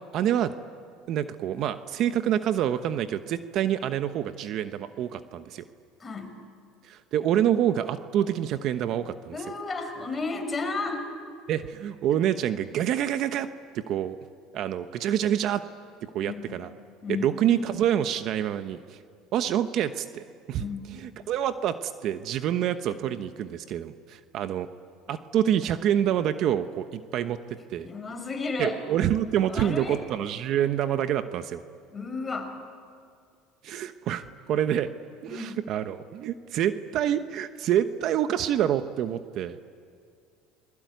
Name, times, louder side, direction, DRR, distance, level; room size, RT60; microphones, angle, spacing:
voice 1, 0.1-0.5 1.1-5.6 6.8-9.4 11.5-13.5 13.7-14.2 14.5-15.6 16.1-16.7 17.1-19.0 19.3-24.7 25.1-27.9 28.6-31.6 33.6-34.9 35.2-39.6, right 10 dB, 50° right, 10 dB, 1.0 m, -27 dB
voice 2, 6.0-6.3 9.3-11.0 16.3-16.6 17.0-17.3 20.6-20.9 27.8-28.8 29.5-30.0 31.9-32.5 35.3-35.6, left 3 dB, 20° left, 4 dB, 4.9 m, -32 dB
29.5 x 21.0 x 9.4 m, 2.3 s
cardioid pair, 125°, 0 cm